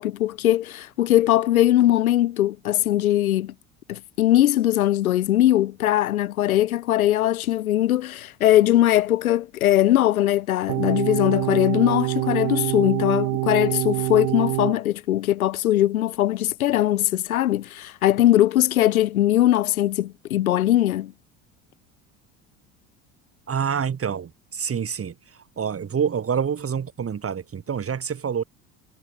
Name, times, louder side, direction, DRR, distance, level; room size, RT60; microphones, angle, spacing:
voice 1, 0.0-3.5 3.9-21.1, left 13 dB, 90° left, 1.0 m, -20 dB
sound 1, 10.7-14.8, right 34 dB, 70° right, 3.2 m, -25 dB
voice 2, 23.5-25.1 25.6-28.4, right 7 dB, 35° right, 4.7 m, -27 dB
hypercardioid pair, 75°, 41 cm